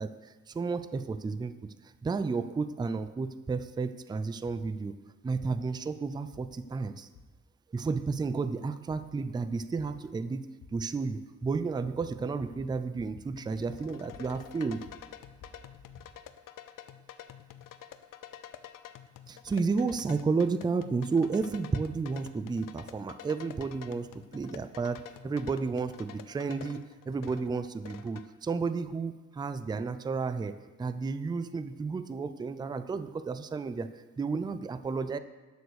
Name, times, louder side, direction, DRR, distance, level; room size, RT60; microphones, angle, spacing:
voice 1, 0.0-1.7 2.0-4.9 5.2-7.1 7.7-10.4 10.7-14.8 19.3-35.2, right 4 dB, 15° right, 12 dB, 0.3 m, -32 dB
sound 1, 6.3-6.4 7.1-7.2 8.1-8.2 8.9-9.0 9.8-9.9 10.6-10.7 11.4-11.5 11.8-12.1 12.4-12.7 13.0-13.3 13.5-14.4 14.7-16.1, left 5 dB, 60° left, 1.3 m, -52 dB
sound 2, 13.4-28.3, left 10 dB, 85° left, 0.7 m, -49 dB
11.0 x 6.9 x 6.5 m, 1.2 s
wide cardioid pair, 175°, 32 cm